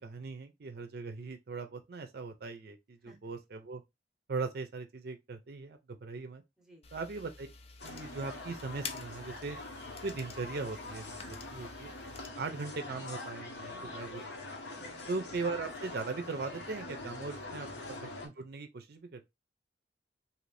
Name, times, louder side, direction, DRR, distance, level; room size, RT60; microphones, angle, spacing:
voice 1, 0.0-3.8 4.3-6.4 6.9-7.5 7.8-9.6 10.0-11.2 11.5-11.9 12.4-14.2 14.5-14.6 15.1-17.7 18.2-19.3, right 4 dB, 60° right, 0.5 m, -39 dB
voice 2, 3.0-3.4 6.6-6.9 11.2-11.4 13.7-14.0 14.8-15.0 17.4-17.7, equal, 5° right, 0.7 m, -57 dB
sound 1, 6.8-12.3, left 5 dB, 35° left, 0.4 m, -49 dB
sound 2, 7.8-18.3, left 2 dB, 70° left, 0.8 m, -44 dB
2.7 x 2.6 x 3.2 m
head